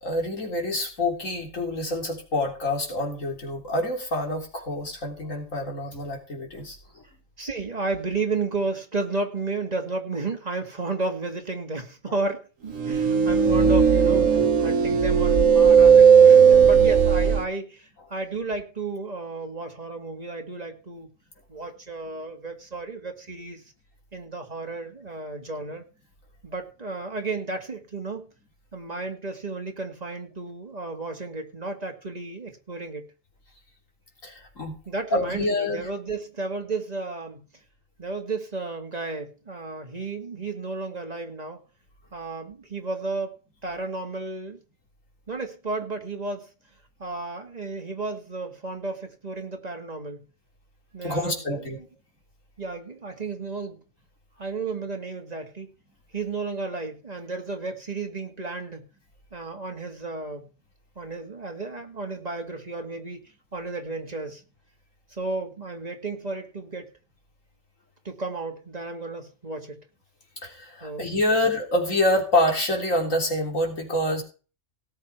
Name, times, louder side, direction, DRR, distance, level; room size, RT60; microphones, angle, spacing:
voice 1, 0.0-6.8 34.2-34.8 35.1-35.9 51.0-51.8 70.4-74.2, left 1 dB, 80° left, 1 dB, 3.9 m, -26 dB
voice 2, 7.4-21.1 21.5-23.6 24.1-25.8 26.4-28.3 28.7-33.0 34.9-37.4 38.0-41.6 42.1-44.6 45.3-46.5 47.0-50.2 50.9-51.8 52.6-53.8 54.4-55.7 56.1-58.9 59.3-60.5 61.0-63.2 63.5-64.4 65.1-66.9 68.0-69.8 70.8-71.4, right 3 dB, 30° right, 3 dB, 2.3 m, -33 dB
sound 1, 12.8-17.4, right 7 dB, 80° right, 1.5 m, -16 dB
17.5 x 7.9 x 4.6 m, 0.35 s
omnidirectional pair, 1.3 m